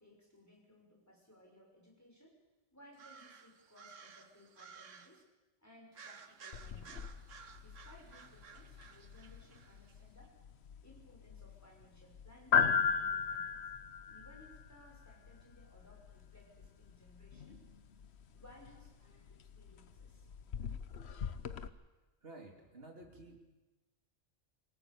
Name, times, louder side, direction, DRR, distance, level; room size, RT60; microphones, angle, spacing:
voice 1, 0.0-2.4 2.7-5.2 5.6-7.2 7.6-10.4 10.8-13.6 14.1-17.6 18.3-20.3 21.1-21.2, left 1 dB, 15° left, -1 dB, 6.3 m, -61 dB
sound 1, 2.9-5.2 5.9-10.0, right 6 dB, 80° right, 1.6 m, -56 dB
sound 2, 6.5-21.7, left 6 dB, 60° left, 1.2 m, -38 dB
voice 2, 22.2-23.4, right 2 dB, 50° right, 2 dB, 3.5 m, -52 dB
26.0 x 18.0 x 7.0 m, 1.1 s
omnidirectional pair, 1.3 m